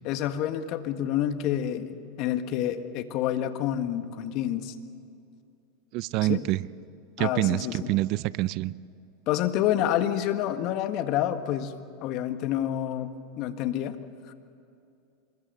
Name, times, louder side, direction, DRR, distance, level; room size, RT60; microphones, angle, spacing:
voice 1, 0.0-4.7 6.3-6.4 7.2-7.9 9.3-11.7 12.0-14.0 14.3-14.4, left 11 dB, 55° left, 9 dB, 1.7 m, -28 dB
voice 2, 5.9-6.6 7.2-8.7, right 17 dB, 55° right, 19 dB, 0.6 m, -26 dB
26.0 x 22.5 x 6.9 m, 2.6 s
hypercardioid pair, 100°, 0 cm